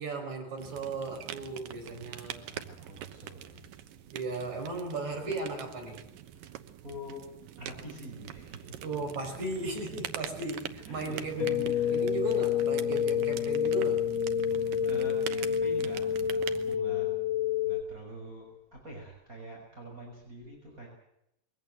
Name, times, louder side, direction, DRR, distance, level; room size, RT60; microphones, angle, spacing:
voice 1, 0.0-2.5 4.1-6.0 8.8-14.0, right 3 dB, 55° right, 2 dB, 6.4 m, -36 dB
sound 1, 0.6-16.8, right 11 dB, 80° right, 2.8 m, -44 dB
voice 2, 1.8-4.0 6.3-8.8 9.2-9.4 10.8-12.0 14.4-17.1 17.6-20.9, equal, 20° right, -2 dB, 6.6 m, -46 dB
sound 2, 11.4-17.8, left 8 dB, 65° left, 1.8 m, -28 dB
22.5 x 17.5 x 7.9 m, 0.80 s
omnidirectional pair, 3.9 m